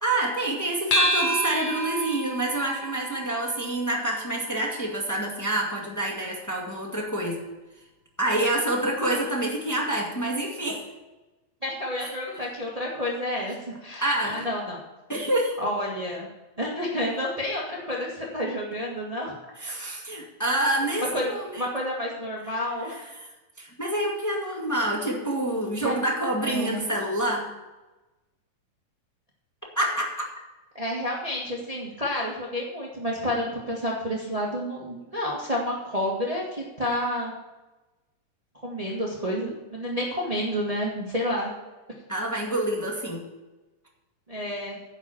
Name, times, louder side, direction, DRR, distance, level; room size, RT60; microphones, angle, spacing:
voice 1, 0.0-7.4 8.2-10.9 12.0-12.1 14.0-14.5 15.1-15.6 19.6-21.6 22.8-23.3 23.6-27.5 29.7-30.1 42.1-43.2, right 1 dB, 10° left, -2 dB, 1.0 m, -27 dB
sound 1, 0.9-5.7, equal, 65° left, 1.1 m, -30 dB
voice 2, 11.6-13.6 13.8-14.8 15.6-16.3 16.6-19.3 21.0-21.3 21.6-23.0 25.8-26.0 26.4-26.8 30.7-37.3 38.6-41.5 44.3-44.8, left 1 dB, 50° right, -3 dB, 0.4 m, -30 dB
10.5 x 6.1 x 7.2 m, 1.1 s
omnidirectional pair, 3.9 m